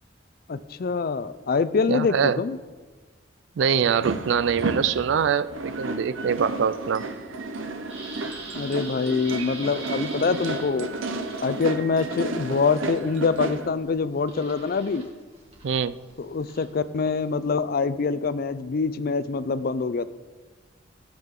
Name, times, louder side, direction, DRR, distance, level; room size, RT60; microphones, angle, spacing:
voice 1, 0.5-2.6 8.5-10.9 11.4-15.1 16.2-20.1, left 4 dB, 50° left, 14 dB, 0.4 m, -25 dB
voice 2, 1.9-2.4 3.6-7.0 15.6-16.0, right 7 dB, 65° right, 16 dB, 0.3 m, -24 dB
sound 1, 3.8-13.7, right 3 dB, 85° right, 0.8 m, -33 dB
sound 2, 5.5-17.5, right 3 dB, 30° right, 1.9 m, -45 dB
15.0 x 7.5 x 3.7 m, 1.3 s
head